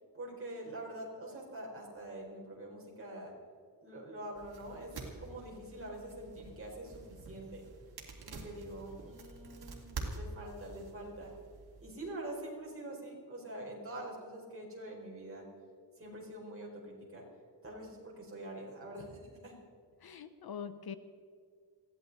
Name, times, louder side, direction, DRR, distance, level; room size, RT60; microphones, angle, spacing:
voice 1, 0.1-3.3 3.8-4.9 5.2-7.6 8.2-11.3 11.8-15.5 16.0-17.2 17.6-19.6, right 1 dB, 30° right, -2 dB, 4.6 m, -45 dB
sound 1, 4.4-11.9, right 3 dB, 60° right, 3.0 m, -47 dB
voice 2, 20.0-21.0, left 7 dB, 60° left, 12 dB, 0.8 m, -43 dB
21.5 x 16.0 x 4.1 m, 2.1 s
wide cardioid pair, 160°, 42 cm